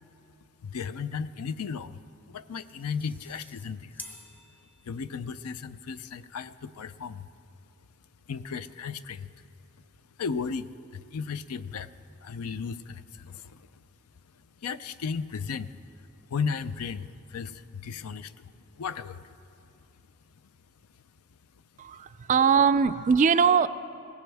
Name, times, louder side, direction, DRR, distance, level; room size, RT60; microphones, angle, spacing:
voice 1, 0.6-2.0 2.3-4.0 4.8-7.3 8.3-9.3 10.2-11.9 12.2-13.7 14.6-15.7 16.3-18.5 18.8-19.3, left 5 dB, 85° left, 14 dB, 0.5 m, -35 dB
sound 1, 2.4-5.4, left 1 dB, 10° left, 0.6 m, -49 dB
voice 2, 21.8-23.7, right 6 dB, 35° right, 13 dB, 0.3 m, -21 dB
22.0 x 16.5 x 3.4 m, 2.7 s
head